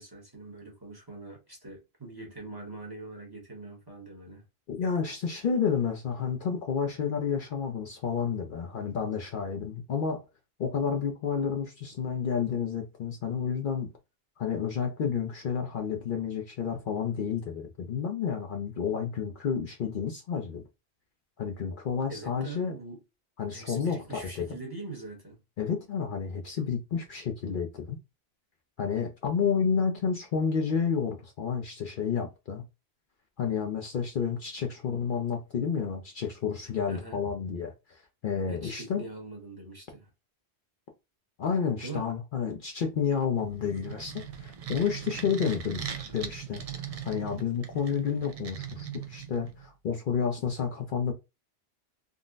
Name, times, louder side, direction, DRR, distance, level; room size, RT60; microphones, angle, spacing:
voice 1, 0.0-4.4 22.1-23.0 23.5-25.4 36.9-37.2 38.5-40.1 41.8-42.1, right 3 dB, 25° right, 1.0 m, -43 dB
voice 2, 4.7-10.2 10.6-13.9 14.4-20.6 21.4-22.8 23.4-24.6 25.6-28.0 28.8-32.6 33.4-39.0 41.4-45.8 46.1-46.6 47.0-51.1, left 6 dB, 60° left, 0.7 m, -30 dB
sound 1, 43.4-49.7, right 8 dB, 50° right, 0.4 m, -40 dB
3.7 x 2.1 x 2.4 m
omnidirectional pair, 1.1 m